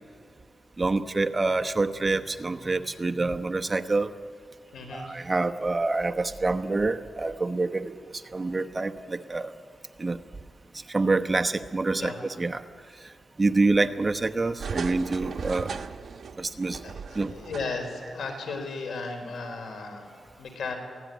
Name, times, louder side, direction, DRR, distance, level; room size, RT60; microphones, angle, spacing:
voice 1, 0.8-4.1 4.9-7.9 8.3-9.5 10.0-10.2 10.9-12.6 13.4-15.8 16.4-16.8 17.1-17.3, right 3 dB, 25° right, 7 dB, 1.0 m, -26 dB
voice 2, 4.7-5.2 12.0-12.4 16.2-20.1 20.4-20.8, left 4 dB, 80° left, 5 dB, 4.3 m, -36 dB
sound 1, 14.6-18.0 18.3-18.4, right 6 dB, 60° right, 1.1 m, -37 dB
23.5 x 17.0 x 9.3 m, 2.1 s
cardioid pair, 95°, 0 cm